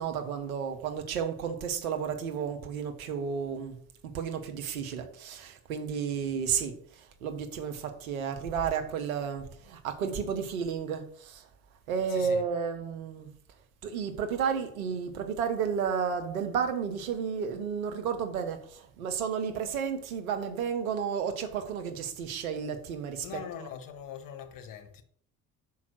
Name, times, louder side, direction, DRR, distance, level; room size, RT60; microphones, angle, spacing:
voice 1, 0.0-3.8 4.0-11.5 11.9-13.3 13.8-23.7, right 7 dB, 75° right, 1.0 m, -32 dB
voice 2, 12.1-12.4 23.2-25.0, left 8 dB, 50° left, 1.1 m, -42 dB
5.7 x 4.7 x 6.2 m
figure-of-eight pair, 50°, 42 cm